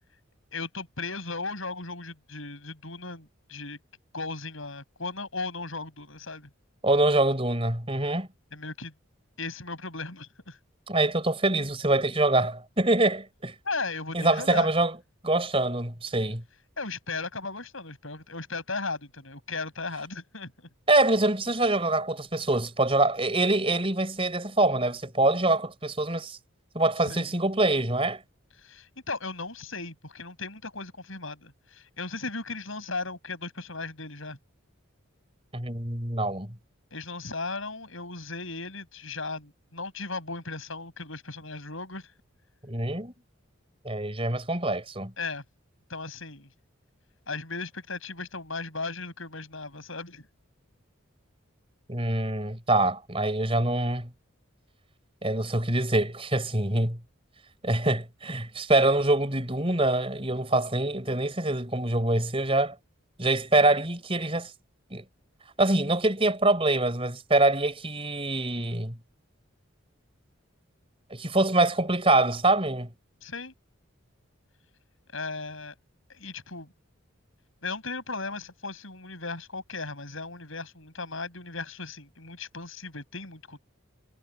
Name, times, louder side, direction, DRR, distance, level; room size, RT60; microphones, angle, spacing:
voice 1, 0.5-3.8 4.1-6.5 8.5-8.9 9.4-10.6 13.6-14.7 16.8-20.7 27.0-27.3 28.6-34.4 36.9-42.1 45.2-45.4 45.9-46.5 47.3-50.2 73.2-73.5 75.1-75.7 76.1-76.7 77.6-83.6, left 3 dB, 70° left, 7.9 m, -36 dB
voice 2, 6.8-8.3 10.9-13.5 14.1-15.0 15.2-16.4 20.9-26.4 26.7-28.2 35.5-36.5 42.6-43.1 43.8-45.1 51.9-54.1 55.2-57.0 57.6-62.8 63.2-64.5 64.9-65.0 65.6-69.0 71.1-72.9, right 2 dB, 25° right, 4.3 m, -25 dB
head